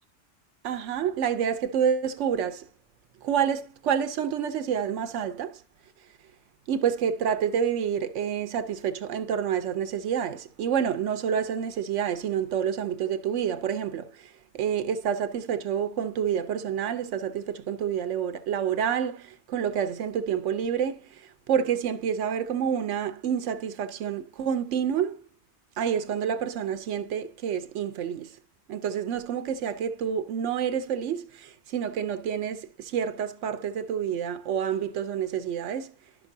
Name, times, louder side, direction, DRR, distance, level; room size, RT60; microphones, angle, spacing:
voice 1, 0.6-2.7 3.2-5.6 6.7-25.2 25.8-28.4 28.7-35.9, right 8 dB, 85° right, 1.0 m, -28 dB
11.0 x 6.0 x 2.6 m
omnidirectional pair, 1.2 m